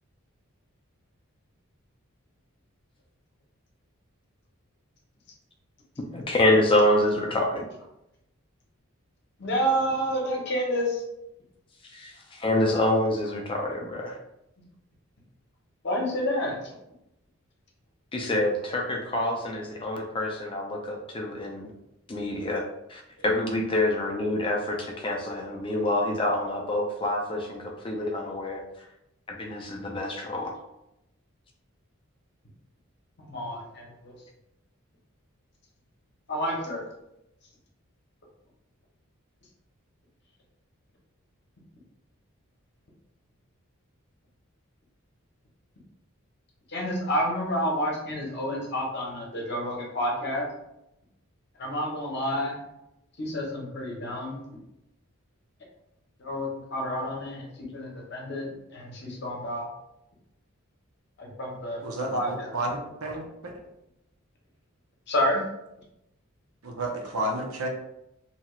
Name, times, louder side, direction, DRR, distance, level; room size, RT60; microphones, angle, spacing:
voice 1, 6.1-7.7 11.8-14.2 18.1-21.7 22.1-22.6 22.9-28.6 29.3-30.5, left 1 dB, 25° left, 0 dB, 0.4 m, -26 dB
voice 2, 9.4-11.0 15.8-16.5 33.3-34.2 36.3-36.8 46.7-50.5 51.6-52.6 53.2-54.4 56.2-57.4 57.7-59.7 61.2-61.8 62.1-62.5 65.1-65.4, equal, 50° left, -2 dB, 0.8 m, -29 dB
voice 3, 61.8-63.6 66.6-67.7, right 1 dB, 85° right, 1 dB, 0.6 m, -31 dB
2.7 x 2.3 x 3.0 m, 0.86 s
head